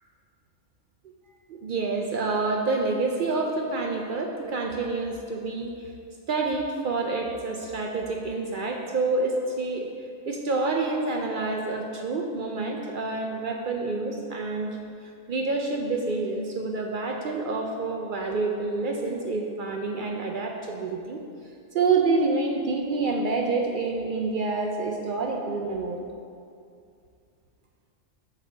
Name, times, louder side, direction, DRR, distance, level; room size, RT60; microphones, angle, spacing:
voice 1, 1.5-5.7 6.3-9.9 10.3-21.2 21.7-26.0, right 3 dB, 70° right, 2 dB, 0.5 m, -28 dB
7.9 x 3.2 x 6.2 m, 2.4 s
omnidirectional pair, 1.4 m